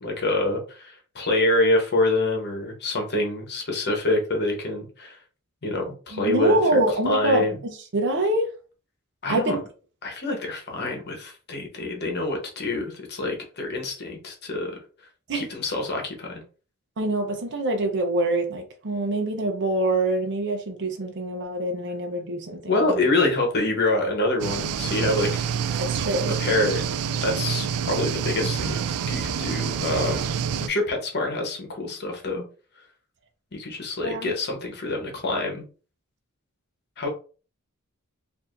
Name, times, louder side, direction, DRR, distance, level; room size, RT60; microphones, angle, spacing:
voice 1, 0.0-5.2 5.6-7.6 9.2-9.6 10.0-14.7 15.3-16.4 22.7-25.5 26.4-26.9 27.2-28.8 29.1-30.4 30.6-32.4 33.5-35.6 37.0-37.1, left 2 dB, 50° left, 1.1 m, -26 dB
voice 2, 6.1-7.4 7.9-8.5 9.3-9.6 15.3-15.4 17.0-22.9 25.8-26.3 34.0-34.3, right 2 dB, 55° right, 0.7 m, -25 dB
sound 1, 24.4-30.7, right 7 dB, 80° right, 0.3 m, -27 dB
4.7 x 2.7 x 2.5 m
head